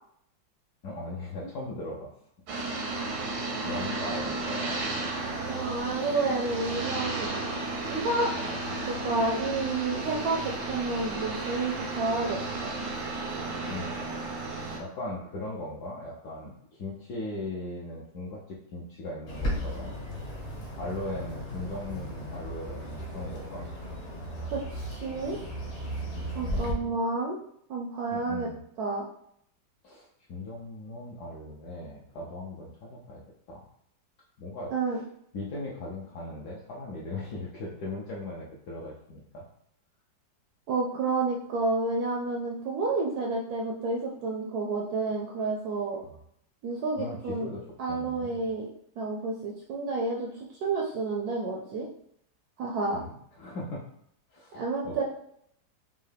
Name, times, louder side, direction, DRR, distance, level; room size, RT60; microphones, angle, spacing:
voice 1, 0.8-2.1 3.6-5.2 8.3-9.1 13.7-14.1 14.5-20.1 20.8-23.6 26.1-27.0 28.1-28.6 29.8-33.2 33.5-33.6 34.4-34.7 35.3-39.5 46.0-46.2 47.0-47.6 47.9-48.4 52.9-53.8 54.3-54.9, left 2 dB, 65° left, -5 dB, 1.1 m, -39 dB
sound 1, 2.5-14.8, right 2 dB, 90° right, 1.5 m, -33 dB
voice 2, 5.5-7.4 7.9-8.3 8.9-12.7 24.5-24.6 24.9-25.4 26.3-27.4 27.7-28.5 28.8-29.1 34.7-35.0 40.7-46.0 46.6-47.5 47.8-48.7 49.0-51.9 52.6-53.0 54.5-55.0, right 3 dB, 75° right, -1 dB, 0.9 m, -30 dB
Bird, 19.3-26.7, equal, 45° left, 1.1 m, -36 dB
5.4 x 2.2 x 3.3 m, 0.71 s
omnidirectional pair, 2.1 m